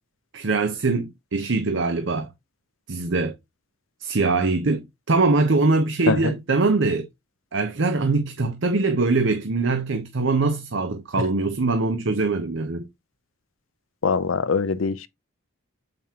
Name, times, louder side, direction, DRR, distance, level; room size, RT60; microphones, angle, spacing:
voice 1, 0.3-2.3 2.9-3.3 4.0-7.1 7.5-12.9, right 3 dB, 65° right, 0.8 m, -22 dB
voice 2, 14.0-15.1, left 4 dB, 80° left, 0.6 m, -23 dB
7.4 x 5.3 x 2.9 m
head